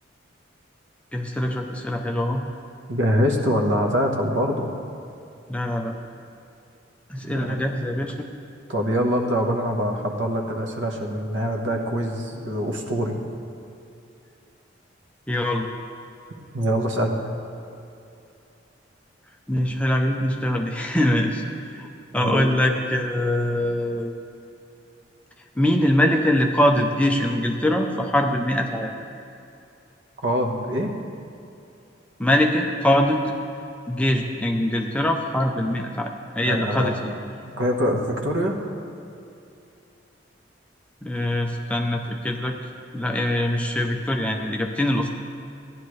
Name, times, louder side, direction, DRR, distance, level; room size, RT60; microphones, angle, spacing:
voice 1, 1.1-2.4 5.5-5.9 7.1-8.3 15.3-15.7 19.5-21.4 21.7-21.9 22.1-24.1 25.6-28.9 32.2-33.2 33.9-37.1 41.0-42.5 42.9-45.1, left 1 dB, 5° left, 1 dB, 0.6 m, -23 dB
voice 2, 2.9-4.7 7.3-7.7 8.7-13.2 16.5-17.2 22.1-22.5 30.2-30.9 36.4-37.1 37.4-38.6, equal, 85° right, 1 dB, 1.3 m, -24 dB
15.5 x 10.5 x 3.3 m, 2.6 s
head